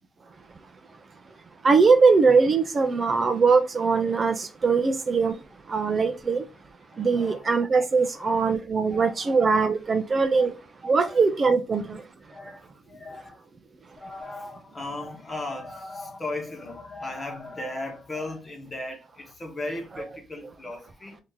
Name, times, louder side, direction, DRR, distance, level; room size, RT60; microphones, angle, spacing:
voice 1, 1.6-6.5 6.9-10.6 10.8-12.1 20.0-20.1, right 4 dB, 35° right, 0.5 m, -21 dB
voice 2, 6.9-7.4 8.1-8.5 8.9-9.3 10.4-10.5 10.9-11.2 12.3-13.4 14.0-21.2, left 2 dB, 25° left, 1.2 m, -37 dB
2.8 x 2.8 x 3.6 m
cardioid pair, 90°, 0 cm